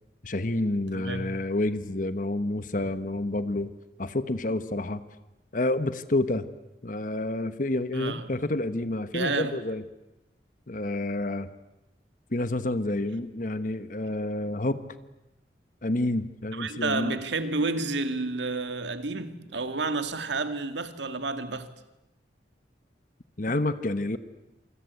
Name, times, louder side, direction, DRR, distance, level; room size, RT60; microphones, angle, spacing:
voice 1, 0.2-3.7 4.0-5.0 5.5-6.5 6.8-9.8 10.7-11.5 12.3-14.8 15.8-17.2 23.4-24.2, left 2 dB, 45° left, 1.2 m, -29 dB
voice 2, 0.9-1.3 7.9-8.4 9.1-9.6 16.5-21.7, right 3 dB, 85° right, 2.2 m, -30 dB
27.5 x 25.5 x 8.3 m
head